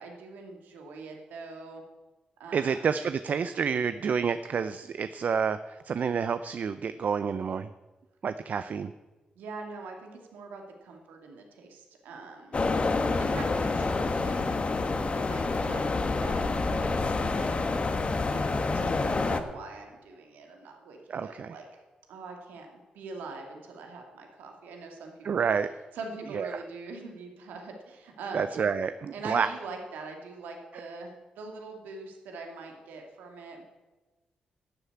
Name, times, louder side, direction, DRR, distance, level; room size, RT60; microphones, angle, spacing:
voice 1, 0.0-1.8 2.4-2.8 9.4-12.6 13.3-14.5 15.1-15.9 16.2-17.6 18.1-21.7 22.1-25.5 25.9-28.7 29.1-33.7, right 3 dB, 85° right, 2 dB, 2.3 m, -43 dB
voice 2, 2.5-7.7 8.2-8.9 21.1-21.5 25.2-25.7 26.3-26.5 28.3-29.5, right 6 dB, 60° right, 12 dB, 0.5 m, -29 dB
sound 1, 12.5-19.4, left 3 dB, 40° left, 1.4 m, -28 dB
11.5 x 8.1 x 8.5 m, 1.2 s
supercardioid pair, 50°, 3 cm